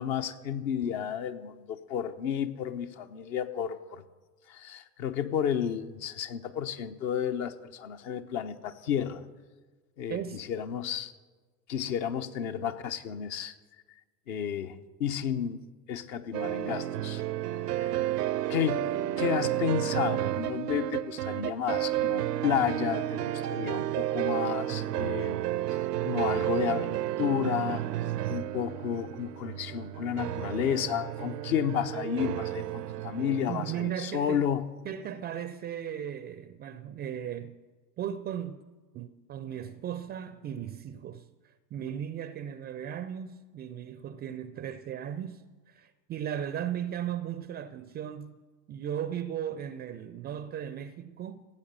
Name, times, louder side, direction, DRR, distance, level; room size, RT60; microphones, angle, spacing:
voice 1, 0.0-4.0 4.5-9.2 10.0-11.1 11.7-13.5 14.3-17.2 17.7-17.9 18.5-18.9 19.2-25.4 25.7-27.9 28.3-34.7, left 9 dB, 55° left, 1.1 m, -32 dB
voice 2, 10.1-10.4 33.5-34.5 34.8-37.6 38.0-38.6 38.9-41.3 41.7-45.4 45.7-48.4 48.7-51.5, right 9 dB, 20° right, 0.4 m, -36 dB
sound 1, 16.3-33.9, right 13 dB, 75° right, 0.6 m, -31 dB
16.0 x 8.5 x 6.8 m
figure-of-eight pair, 75°, 49 cm